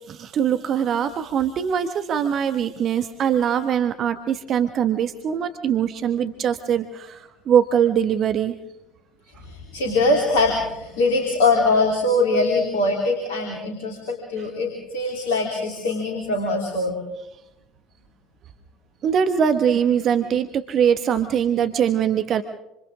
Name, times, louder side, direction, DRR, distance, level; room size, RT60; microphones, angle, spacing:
voice 1, 0.1-8.6 19.0-22.4, right 8 dB, 45° right, 10 dB, 1.3 m, -22 dB
voice 2, 9.4-17.0, left 2 dB, 70° left, 1 dB, 3.3 m, -22 dB
27.5 x 27.0 x 3.7 m, 0.87 s
figure-of-eight pair, 55°, 0 cm